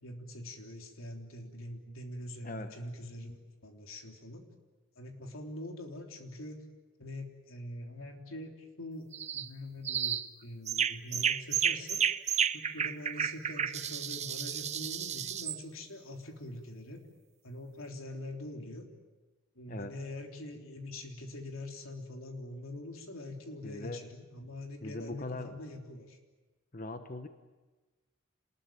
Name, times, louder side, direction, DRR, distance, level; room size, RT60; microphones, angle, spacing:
voice 1, 0.0-4.5 5.0-6.6 7.0-9.1 9.3-12.0 12.5-17.0 17.4-18.9 19.6-26.2, left 1 dB, 90° left, 3 dB, 3.4 m, -44 dB
voice 2, 2.4-2.8 19.7-19.9 23.6-24.1 24.8-25.6 26.7-27.3, left 2 dB, 40° left, 8 dB, 1.1 m, -40 dB
sound 1, 9.1-9.5 9.8-10.3 10.7-15.6, right 8 dB, 35° right, 0.7 m, -32 dB
27.0 x 20.5 x 9.1 m, 1.2 s
head